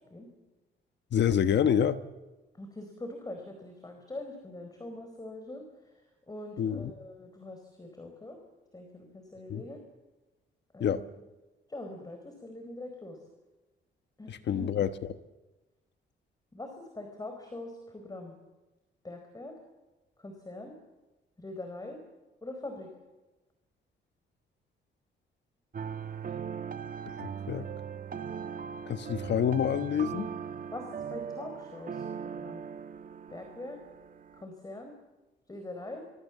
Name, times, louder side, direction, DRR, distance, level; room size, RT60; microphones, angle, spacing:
voice 1, 1.1-2.0 6.6-6.9 9.5-9.6 10.8-11.0 14.3-15.1 27.2-27.7 28.9-30.3, left 8 dB, 60° left, 11 dB, 1.3 m, -27 dB
voice 2, 2.6-5.6 6.3-8.4 8.7-9.8 10.7-11.0 11.7-13.2 14.2-14.7 16.5-18.3 19.0-19.5 20.2-20.7 21.4-22.0 22.4-22.9 30.7-32.6 33.3-33.8 34.3-34.9 35.5-36.0, left 2 dB, 20° left, 5 dB, 4.7 m, -43 dB
sound 1, 25.7-34.4, right 7 dB, 45° right, 1.5 m, -39 dB
24.5 x 23.5 x 7.4 m, 1.1 s
cardioid pair, 90°, 20 cm